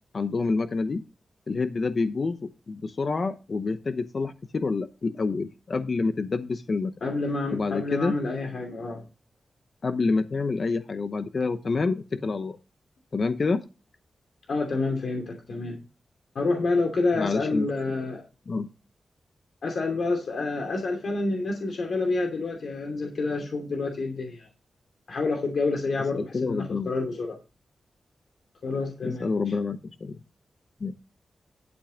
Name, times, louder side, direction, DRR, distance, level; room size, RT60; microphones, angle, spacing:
voice 1, 0.1-1.0 1.5-6.9 7.5-8.2 9.8-12.6 13.1-13.6 17.1-17.6 18.5-18.7 26.2-26.9 29.0-30.2 30.8-30.9, left 4 dB, 40° left, 10 dB, 0.8 m, -27 dB
voice 2, 7.0-9.0 14.5-15.8 16.3-18.2 19.6-24.5 25.1-27.4 28.6-29.5, left 3 dB, 60° left, 3 dB, 2.7 m, -28 dB
12.0 x 5.4 x 5.0 m, 0.29 s
wide cardioid pair, 150°, 0 cm